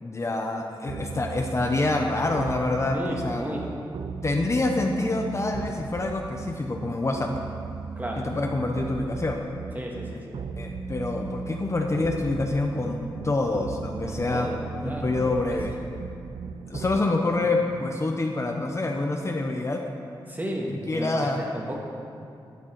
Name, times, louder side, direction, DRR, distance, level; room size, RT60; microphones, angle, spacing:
voice 1, 0.0-3.4 4.2-7.3 8.2-9.4 10.6-14.5 14.8-15.7 16.7-19.8 20.7-21.4, left 2 dB, 30° left, 2 dB, 0.7 m, -26 dB
sound 1, 0.9-17.0, right 5 dB, 65° right, 0.4 m, -36 dB
voice 2, 2.9-3.6 8.0-8.3 9.7-10.4 14.0-15.6 17.4-17.6 20.3-21.3 21.5-21.8, equal, 20° right, -1 dB, 1.6 m, -33 dB
11.5 x 7.3 x 4.5 m, 2.5 s
cardioid pair, 75°, 9 cm